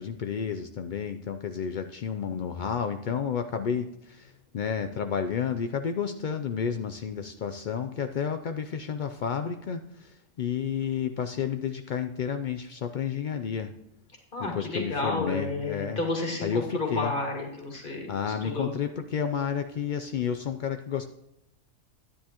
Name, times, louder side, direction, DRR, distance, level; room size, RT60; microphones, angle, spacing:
voice 1, 0.0-13.7 14.4-16.0 16.4-17.1 18.1-21.0, left 7 dB, 80° left, 7 dB, 0.4 m, -31 dB
voice 2, 14.3-18.7, left 2 dB, 40° left, 0 dB, 2.2 m, -31 dB
10.0 x 9.9 x 2.9 m, 0.83 s
omnidirectional pair, 1.4 m